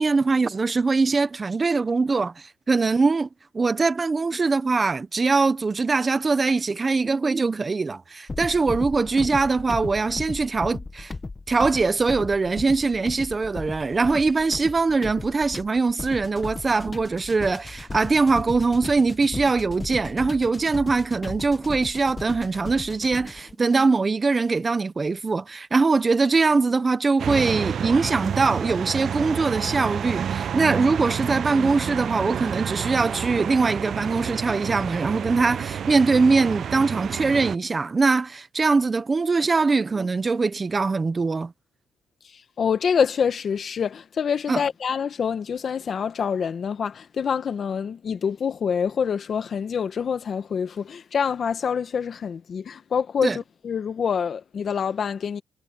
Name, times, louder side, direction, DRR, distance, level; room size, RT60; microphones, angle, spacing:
voice 1, 0.0-3.3 3.5-11.1 11.5-41.5 44.5-44.6 53.2-53.4, right 4 dB, 30° right, 1.3 m, -22 dB
sound 1, 8.3-23.5, left 3 dB, 25° left, 1.8 m, -36 dB
sound 2, 27.2-37.6, right 8 dB, 60° right, 0.4 m, -29 dB
voice 2, 42.2-55.4, left 7 dB, 50° left, 1.8 m, -26 dB
cardioid pair, 90°, 0 cm